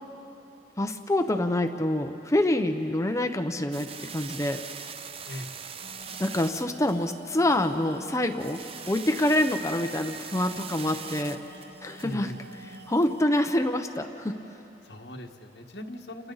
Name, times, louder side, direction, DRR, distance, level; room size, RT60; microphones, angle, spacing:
voice 1, 0.8-4.6 6.2-11.4 11.8-12.3 12.9-14.3, left 1 dB, 15° left, 6 dB, 0.7 m, -26 dB
sound 1, 3.7-13.1, right 7 dB, 35° right, 0.6 m, -42 dB
sound 2, 5.8-13.3, right 1 dB, 70° right, 1.6 m, -49 dB
voice 2, 12.0-12.4 14.8-16.3, left 1 dB, 70° left, 2 dB, 1.5 m, -39 dB
29.5 x 29.0 x 4.0 m, 3.0 s
head